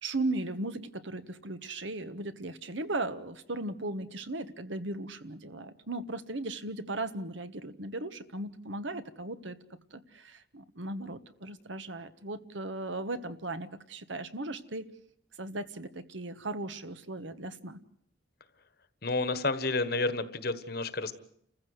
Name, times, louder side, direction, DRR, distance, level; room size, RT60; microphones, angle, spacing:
voice 1, 0.0-9.6 9.9-14.9 15.4-17.8, right 2 dB, 70° right, 12 dB, 1.4 m, -37 dB
voice 2, 19.0-21.1, left 3 dB, 50° left, 13 dB, 1.4 m, -30 dB
29.0 x 15.0 x 8.0 m, 0.69 s
head